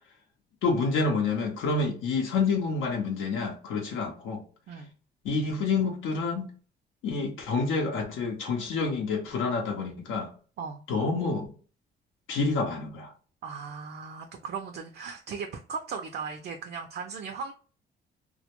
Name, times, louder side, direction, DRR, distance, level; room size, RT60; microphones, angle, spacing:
voice 1, 0.6-4.4 5.2-6.5 7.0-10.3 10.9-11.5 12.3-13.1, left 4 dB, 85° left, 0.6 m, -28 dB
voice 2, 13.4-17.5, right 5 dB, 55° right, 0.4 m, -37 dB
2.1 x 2.1 x 2.9 m
cardioid pair, 90°, 20 cm